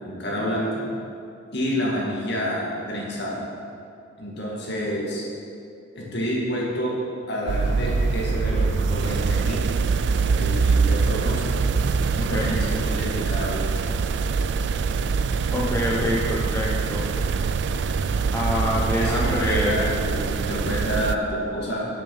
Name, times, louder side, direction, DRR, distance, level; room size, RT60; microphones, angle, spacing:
voice 1, 0.1-0.8 1.5-3.4 4.2-5.3 6.0-6.9 7.3-9.6 10.4-11.5 12.2-13.8 18.9-21.9, equal, 55° left, -4 dB, 2.1 m, -28 dB
sound 1, 7.5-21.2, right 5 dB, 60° right, 0.4 m, -24 dB
voice 2, 15.5-17.1 18.3-19.7, left 1 dB, 10° left, -5 dB, 0.9 m, -26 dB
9.9 x 7.0 x 5.5 m, 2.6 s
head